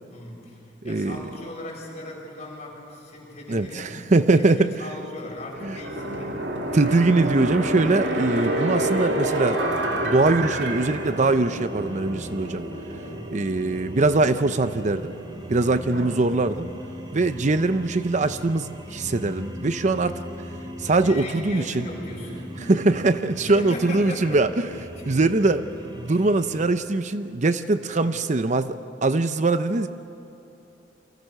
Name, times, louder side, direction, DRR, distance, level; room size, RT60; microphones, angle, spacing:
voice 1, 0.1-6.4 13.0-13.4 15.5-15.8 21.0-22.5 23.4-24.4 25.0-25.2 26.1-26.3 27.9-28.2, left 1 dB, 40° left, -2 dB, 7.0 m, -38 dB
voice 2, 0.8-1.2 3.5-4.7 5.6-5.8 6.7-9.6 10.0-12.7 13.3-15.1 15.5-16.7 17.1-20.2 20.8-21.9 22.6-24.7 25.1-25.6 26.0-29.9, right 2 dB, 40° right, 11 dB, 0.6 m, -22 dB
sound 1, 5.5-16.1, right 1 dB, 70° right, 2.9 m, -29 dB
sound 2, 9.6-26.7, equal, 25° right, 3.0 m, -39 dB
29.5 x 24.0 x 6.6 m, 2.9 s
head